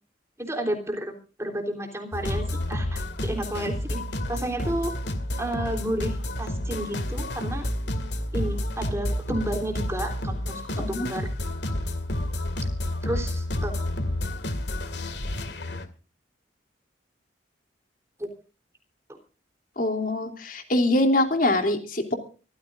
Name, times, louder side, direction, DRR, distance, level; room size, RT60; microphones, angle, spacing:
voice 1, 0.4-4.0 4.3-4.9 5.4-7.6 8.3-11.3 13.0-13.7 18.2-18.3 19.1-19.2, right 1 dB, 15° right, 4 dB, 3.5 m, -31 dB
sound 1, 2.1-15.9, left 1 dB, 70° left, 2.2 m, -30 dB
voice 2, 10.7-11.1 19.8-22.1, left 1 dB, 50° left, 5 dB, 3.1 m, -24 dB
25.0 x 14.5 x 2.5 m, 0.35 s
head